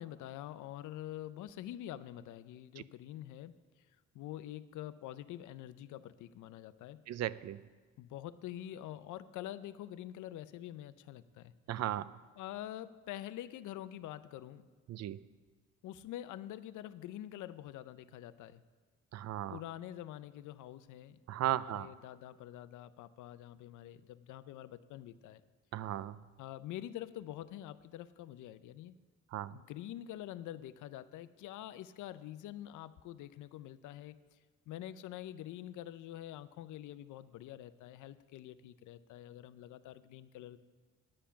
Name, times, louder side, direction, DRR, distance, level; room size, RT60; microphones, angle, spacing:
voice 1, 0.0-3.5 4.1-7.0 8.0-11.5 12.4-14.7 15.8-18.6 19.5-21.2 21.5-25.4 26.4-28.9 29.5-34.2 34.7-40.6, left 12 dB, 80° left, 14 dB, 0.5 m, -46 dB
voice 2, 7.1-7.6 11.7-12.2 14.9-15.2 19.1-19.6 21.3-21.9 25.7-26.2 29.3-29.6, right 12 dB, 60° right, 17 dB, 0.4 m, -36 dB
10.0 x 8.7 x 5.7 m, 1.5 s
cardioid pair, 90°, 30 cm